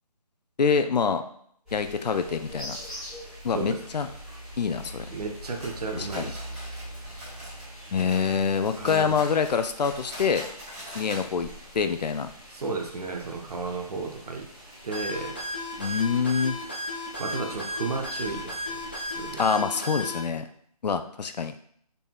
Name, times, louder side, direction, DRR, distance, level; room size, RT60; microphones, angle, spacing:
voice 1, 0.6-1.2 1.7-2.8 3.4-4.1 4.6-5.1 5.9-6.2 7.9-10.5 10.9-11.5 11.7-12.3 15.8-16.6 19.4-20.5 20.8-21.5, left 6 dB, 85° left, 8 dB, 0.5 m, -25 dB
sound 1, 1.7-19.5, equal, ahead, 1.1 m, -44 dB
voice 2, 5.1-6.4 8.8-9.2 12.5-14.5 14.8-15.4 17.2-18.8 19.1-19.4, right 4 dB, 70° right, 3 dB, 0.8 m, -33 dB
sound 2, 5.4-7.7 7.9-11.3 11.5-11.6 12.0-12.1 12.7-12.8, equal, 20° right, 1.5 m, -43 dB
sound 3, 14.9-20.2, left 1 dB, 15° left, 0.3 m, -34 dB
4.0 x 3.6 x 2.3 m, 0.65 s
hypercardioid pair, 165°, 21 cm